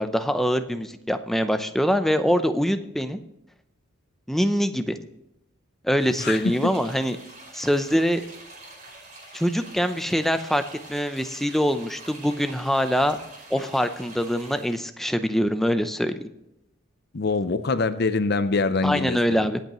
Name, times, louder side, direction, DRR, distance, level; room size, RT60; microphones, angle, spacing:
voice 1, 0.0-3.2 4.3-5.0 5.8-7.2 7.5-8.2 9.3-10.6 10.9-13.2 13.5-16.2 18.8-19.6, equal, ahead, 8 dB, 0.6 m, -24 dB
sound 1, 6.0-14.8, right 2 dB, 40° right, 4.5 m, -45 dB
voice 2, 17.1-19.4, left 3 dB, 50° left, 11 dB, 0.6 m, -24 dB
23.5 x 8.1 x 3.0 m, 0.88 s
head